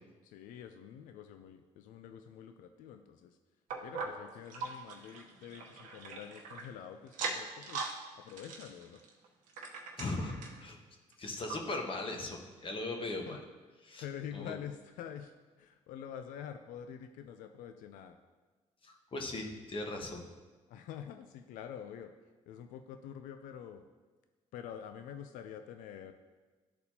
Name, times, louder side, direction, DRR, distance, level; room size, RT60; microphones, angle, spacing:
voice 1, 0.2-3.4 3.8-7.9 8.2-9.0 13.3-13.4 14.0-15.3 15.6-18.2 20.7-22.1 22.5-23.8 24.5-26.1, left 9 dB, 85° left, 8 dB, 0.4 m, -46 dB
sound 1, 3.7-6.7 7.1-8.0 8.3-10.6 11.1-11.2 11.5-11.6 12.2-12.3, right 4 dB, 80° right, 1.0 m, -41 dB
voice 2, 10.0-10.8 11.2-13.4 13.8-14.0 14.3-14.5 18.8-20.3, left 2 dB, 40° left, 2 dB, 1.2 m, -38 dB
12.0 x 4.1 x 2.8 m, 1.3 s
cardioid pair, 85°, 13 cm